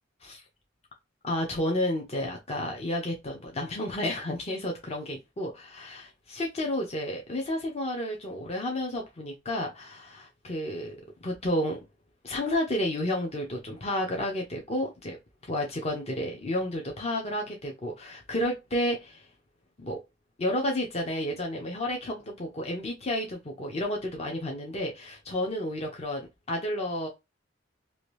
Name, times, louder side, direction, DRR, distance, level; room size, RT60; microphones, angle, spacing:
voice 1, 1.2-11.8 12.2-15.2 15.5-19.3 19.8-20.0 20.4-26.2 26.5-27.1, left 1 dB, 35° left, 0.7 m, -31 dB
2.8 x 2.6 x 3.1 m
head